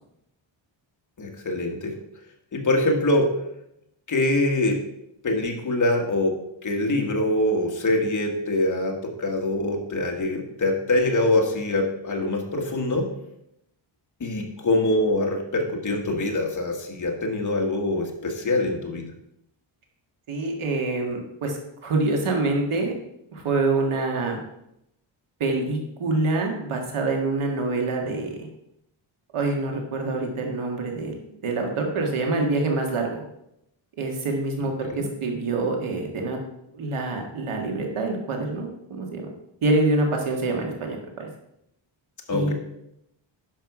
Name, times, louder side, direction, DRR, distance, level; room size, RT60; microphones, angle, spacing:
voice 1, 1.2-2.0 2.5-3.3 4.1-4.8 5.2-13.1 14.2-19.1 34.8-35.1 42.3-42.5, left 1 dB, 35° left, 1 dB, 1.6 m, -24 dB
voice 2, 20.3-22.9 23.3-24.4 25.4-28.5 29.3-31.1 31.4-33.2 34.0-36.4 36.7-39.2 39.6-41.3 42.3-42.5, right 2 dB, 80° right, 1 dB, 1.9 m, -26 dB
10.5 x 6.7 x 4.9 m, 0.80 s
wide cardioid pair, 175°, 49 cm